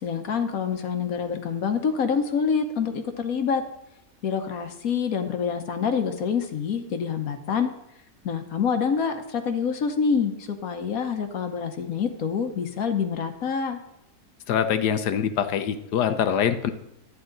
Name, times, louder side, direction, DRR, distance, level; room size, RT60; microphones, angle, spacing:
voice 1, 0.0-3.6 4.2-7.7 8.2-13.8, left 6 dB, 65° left, 7 dB, 1.3 m, -26 dB
voice 2, 14.5-16.7, left 8 dB, 85° left, 10 dB, 1.3 m, -24 dB
11.5 x 9.7 x 3.9 m, 0.82 s
omnidirectional pair, 1.7 m